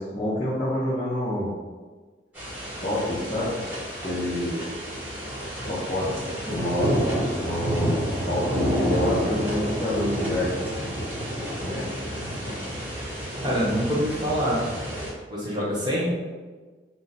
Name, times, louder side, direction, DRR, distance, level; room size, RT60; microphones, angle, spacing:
voice 1, 0.0-1.5 2.8-3.6 4.0-4.7 5.5-7.0 7.4-10.6 11.6-12.0, left 1 dB, 30° left, -9 dB, 0.6 m, -28 dB
sound 1, 2.3-15.1, equal, 10° right, 1.3 m, -29 dB
voice 2, 13.4-14.7 15.3-16.1, equal, 25° right, -6 dB, 0.9 m, -25 dB
3.7 x 2.0 x 4.0 m, 1.4 s
head